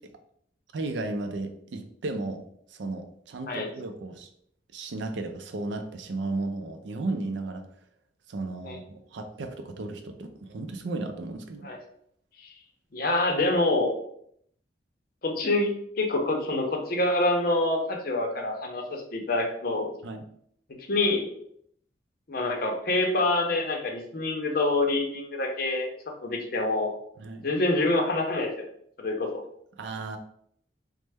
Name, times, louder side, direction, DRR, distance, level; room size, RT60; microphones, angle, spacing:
voice 1, 0.7-4.3 4.7-7.6 8.3-11.7 20.0-20.2 27.2-27.4 29.7-30.2, right 2 dB, 75° right, 7 dB, 0.4 m, -34 dB
voice 2, 12.9-13.9 15.2-15.7 16.0-19.9 20.9-21.3 22.3-25.9 26.2-26.9 27.4-28.6 29.0-29.3, left 2 dB, 50° left, 2 dB, 0.6 m, -26 dB
3.2 x 2.1 x 3.3 m, 0.68 s
head